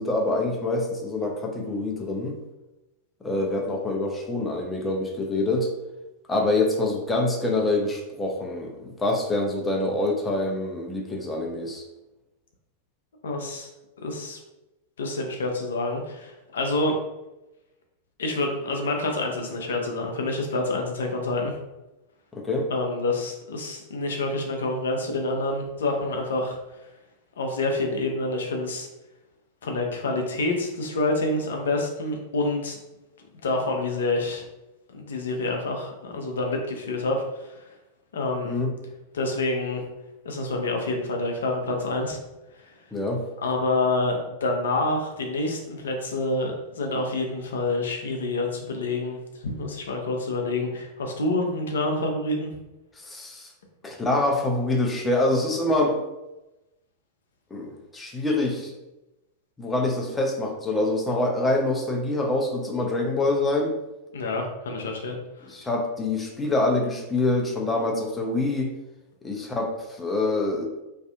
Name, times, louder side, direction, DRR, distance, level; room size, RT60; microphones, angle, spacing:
voice 1, 0.0-2.4 3.2-5.7 6.3-11.8 22.3-22.7 38.4-38.7 42.9-43.2 53.0-53.5 53.8-56.0 57.5-58.7 59.6-63.7 65.5-68.7 69.2-70.7, left 2 dB, 15° left, 1 dB, 0.5 m, -25 dB
voice 2, 13.2-13.7 14.0-14.4 15.0-17.0 18.2-21.6 22.7-26.9 27.4-28.9 29.6-32.8 33.4-34.4 34.9-37.7 38.1-38.6 39.1-39.8 40.2-42.2 42.5-42.9 43.4-52.5 64.1-65.5, left 2 dB, 65° left, 2 dB, 0.5 m, -27 dB
2.6 x 2.4 x 2.3 m, 0.99 s
figure-of-eight pair, 90°, 0 cm